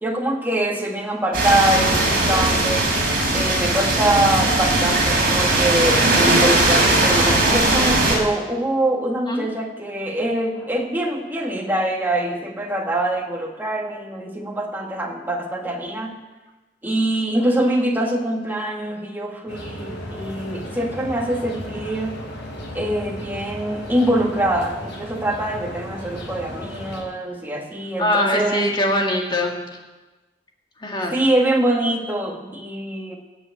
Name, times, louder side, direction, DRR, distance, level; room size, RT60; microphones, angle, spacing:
voice 1, 0.0-2.9 3.3-16.1 16.8-22.2 22.7-28.6 31.1-33.2, right 1 dB, 10° right, 0 dB, 1.8 m, -24 dB
sound 1, 1.3-8.2, right 2 dB, 55° right, 4.6 m, -19 dB
sound 2, 19.5-27.0, left 1 dB, 80° left, 4.6 m, -35 dB
voice 2, 28.0-29.6 30.8-31.1, left 1 dB, 25° left, 0 dB, 1.9 m, -22 dB
17.0 x 7.1 x 8.3 m, 1.2 s
head